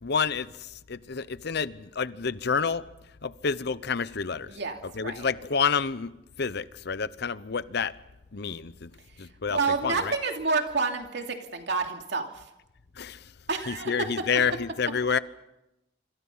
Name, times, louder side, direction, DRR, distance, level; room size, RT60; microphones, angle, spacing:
voice 1, 0.0-2.8 3.2-4.5 4.9-6.1 6.4-7.9 8.3-8.9 9.2-10.1 13.0-13.2 13.7-15.2, left 5 dB, 60° left, 0.8 m, -29 dB
voice 2, 4.5-5.3 9.5-12.4 13.5-14.3, right 4 dB, 65° right, 2.8 m, -29 dB
26.5 x 26.0 x 5.6 m
head